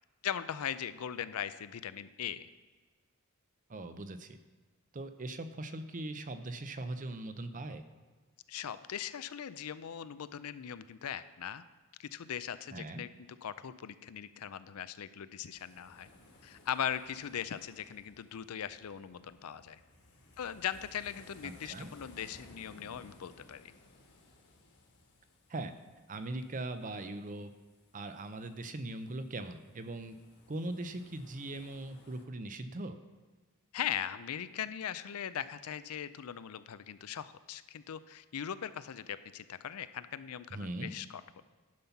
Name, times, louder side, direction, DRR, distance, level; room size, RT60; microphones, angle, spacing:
voice 1, 0.2-2.5 8.5-11.6 12.0-13.1 13.4-16.1 16.4-19.8 20.4-23.7 33.7-41.4, left 9 dB, 75° left, 14 dB, 0.5 m, -39 dB
voice 2, 3.7-4.4 4.9-7.8 12.7-13.0 21.4-21.9 25.5-25.7 26.1-27.5 27.9-30.2 30.5-33.0 40.5-40.9, right 2 dB, 35° right, 10 dB, 0.6 m, -40 dB
sound 1, 15.4-32.3, left 2 dB, 50° left, 1.4 m, -60 dB
10.5 x 5.6 x 5.8 m, 1.4 s
head